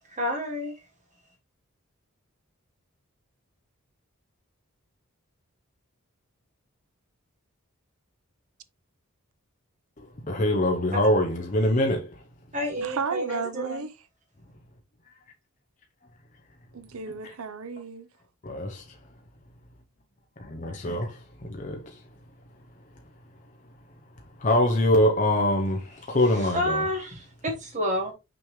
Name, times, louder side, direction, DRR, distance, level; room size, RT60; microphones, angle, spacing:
voice 1, 0.0-0.9 12.5-13.9 26.1-28.1, equal, 35° right, 1.4 m, -30 dB
voice 2, 10.0-12.2 17.2-17.3 18.4-18.9 20.4-22.0 24.4-26.8, left 1 dB, 35° left, 0.7 m, -24 dB
voice 3, 12.8-13.9 16.7-18.1, right 5 dB, 75° right, 0.6 m, -33 dB
6.0 x 5.0 x 3.1 m
head